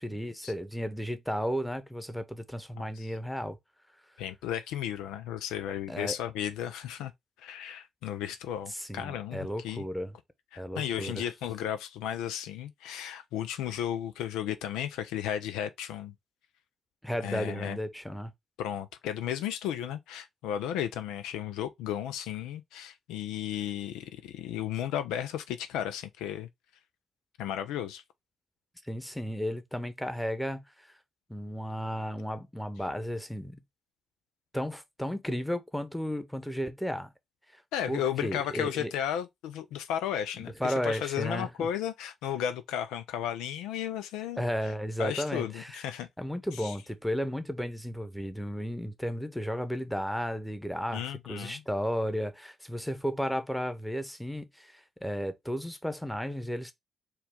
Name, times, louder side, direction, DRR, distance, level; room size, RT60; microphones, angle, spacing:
voice 1, 0.0-3.6 5.9-6.2 8.7-10.1 10.6-11.3 17.0-18.3 28.8-31.0 31.3-33.6 34.5-37.1 37.5-37.6 37.9-38.9 40.4-41.7 44.4-45.8 46.2-51.0 51.3-56.7, equal, 5° left, 1.0 m, -34 dB
voice 2, 2.8-3.1 4.2-7.1 7.4-9.8 10.5-16.1 17.2-17.8 18.6-26.5 27.4-28.0 37.7-44.4 45.0-46.1 46.5-46.8 50.9-51.6, left 10 dB, 85° left, 0.4 m, -34 dB
4.4 x 2.3 x 3.6 m
hypercardioid pair, 45°, 0 cm